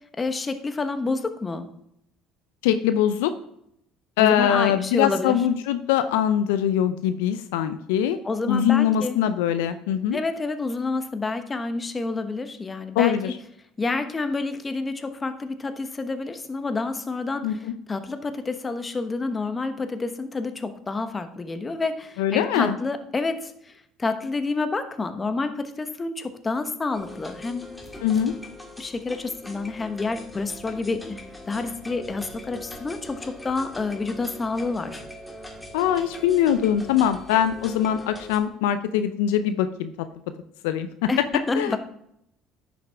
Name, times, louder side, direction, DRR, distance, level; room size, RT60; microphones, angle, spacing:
voice 1, 0.2-1.7 4.2-5.4 8.2-9.2 10.1-13.3 13.8-23.7 24.0-27.8 28.8-35.0 41.1-41.8, left 3 dB, 25° left, 9 dB, 1.1 m, -28 dB
voice 2, 2.6-3.3 4.2-8.2 8.5-10.2 13.0-13.3 17.4-17.5 22.2-22.8 28.0-28.3 35.7-39.9 40.6-41.1 41.6-41.8, left 10 dB, 80° left, 10 dB, 0.5 m, -22 dB
sound 1, 26.9-38.4, left 1 dB, 10° left, 1.8 m, -41 dB
10.5 x 6.5 x 3.5 m, 0.75 s
hypercardioid pair, 75°, 0 cm